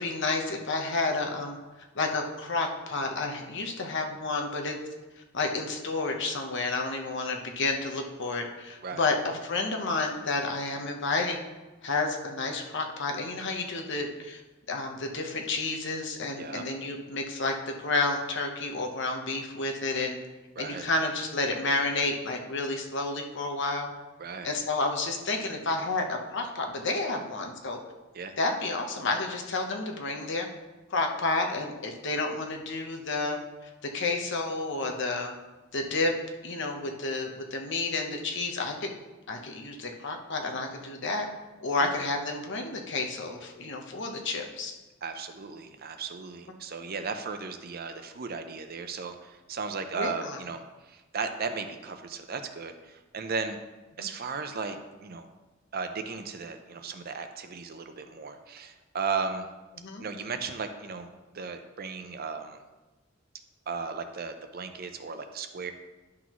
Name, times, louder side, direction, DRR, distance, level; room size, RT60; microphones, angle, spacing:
voice 1, 0.0-1.6 1.9-4.8 5.3-11.4 11.8-14.4 14.7-20.2 20.6-23.9 24.4-27.8 28.4-30.5 30.9-35.3 35.7-36.1 36.4-38.9 39.3-41.3 41.6-44.7 49.9-50.4 54.0-54.1 59.8-60.0, left 3 dB, 65° left, 3 dB, 1.0 m, -30 dB
voice 2, 20.6-20.9 24.2-24.5 28.1-28.4 41.8-42.1 45.0-53.6 54.0-54.8 55.0-55.3 55.7-59.5 60.0-61.1 61.3-62.6 63.7-65.7, right 5 dB, 50° right, 7 dB, 0.6 m, -36 dB
11.0 x 6.2 x 3.0 m, 1.2 s
head